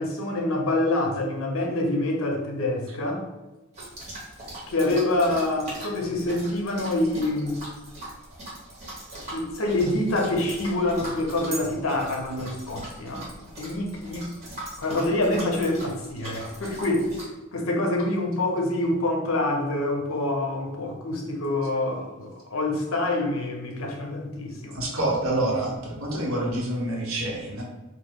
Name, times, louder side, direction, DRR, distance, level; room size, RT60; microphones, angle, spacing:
voice 1, 0.0-3.2 4.7-7.6 9.3-13.3 13.6-14.3 14.8-17.1 17.5-24.8, left 2 dB, 75° left, 2 dB, 0.6 m, -26 dB
sound 1, 3.7-17.3, right 1 dB, 30° right, 1.0 m, -40 dB
voice 2, 24.7-27.6, right 1 dB, 80° right, -2 dB, 0.9 m, -27 dB
3.1 x 2.1 x 3.6 m, 1.1 s
head